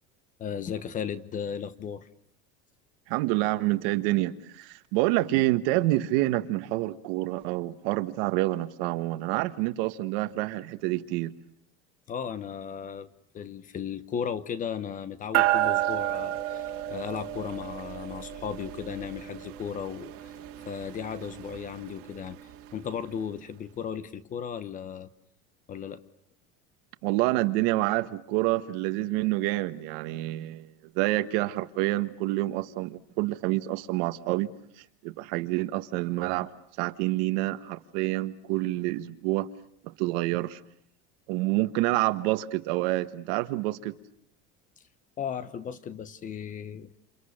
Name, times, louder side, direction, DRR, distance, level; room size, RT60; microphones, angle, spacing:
voice 1, 0.4-2.1 12.1-13.1 13.3-20.3 20.7-22.4 22.7-25.1 25.7-26.0 45.2-47.0, left 7 dB, 25° left, 1.0 m, -35 dB
voice 2, 3.1-11.3 27.0-30.7 30.9-34.5 35.0-36.5 36.8-39.5 39.8-40.6 41.3-44.0, right 18 dB, 70° right, 1.6 m, -27 dB
sound 1, 15.3-23.0, right 15 dB, 50° right, 2.0 m, -32 dB
29.0 x 28.5 x 6.5 m
cardioid pair, 165°, 31 cm